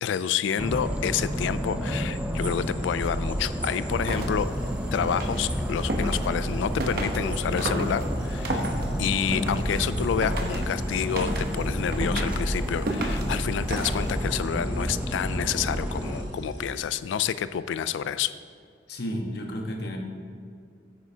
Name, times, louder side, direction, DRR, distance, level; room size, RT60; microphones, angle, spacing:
voice 1, 0.0-4.5 4.9-8.6 9.0-18.3, left 8 dB, 85° left, 15 dB, 0.3 m, -29 dB
sound 1, 0.6-16.2, equal, 5° right, 0.6 m, -30 dB
sound 2, 2.3-16.8, left 1 dB, 25° left, 1.5 m, -47 dB
sound 3, 3.9-14.4, right 1 dB, 55° right, 0.9 m, -34 dB
voice 2, 18.9-20.0, equal, 60° left, 2 dB, 1.1 m, -32 dB
9.5 x 9.3 x 2.8 m, 2.3 s
head